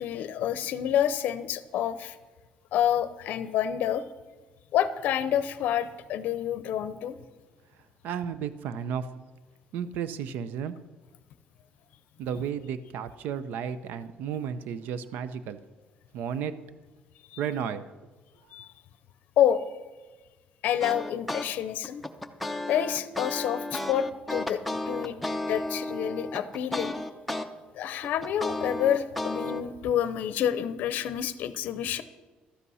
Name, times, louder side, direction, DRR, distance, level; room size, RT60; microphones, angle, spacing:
voice 1, 0.0-2.2 2.7-4.0 4.7-7.2 17.3-17.4 18.5-18.7 19.4-19.7 20.6-22.0 22.7-24.6 24.9-25.2 25.5-26.9 27.8-32.0, left 10 dB, 65° left, 13 dB, 0.6 m, -28 dB
voice 2, 8.0-9.1 9.7-10.8 12.2-15.6 16.1-16.5 17.4-17.8, right 8 dB, 75° right, 13 dB, 0.6 m, -33 dB
sound 1, 20.8-21.5 21.8-27.5 27.8-29.6, left 1 dB, ahead, 0.6 m, -33 dB
13.0 x 8.3 x 5.5 m, 1.3 s
cardioid pair, 160°, 3 cm